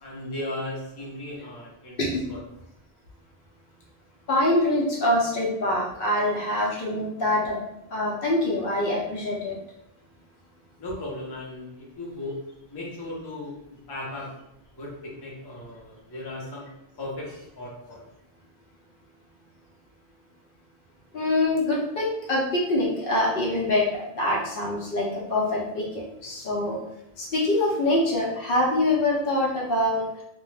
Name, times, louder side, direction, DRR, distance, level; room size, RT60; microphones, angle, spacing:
voice 1, 0.0-2.4 10.8-12.4 12.7-14.3 14.8-16.7 17.0-17.3 17.6-18.0, left 1 dB, 30° left, -4 dB, 0.5 m, -36 dB
voice 2, 4.3-7.6 7.9-9.6 21.1-26.8 27.2-30.0, left 1 dB, 65° left, -3 dB, 0.7 m, -24 dB
2.2 x 2.0 x 3.1 m, 0.80 s
omnidirectional pair, 1.1 m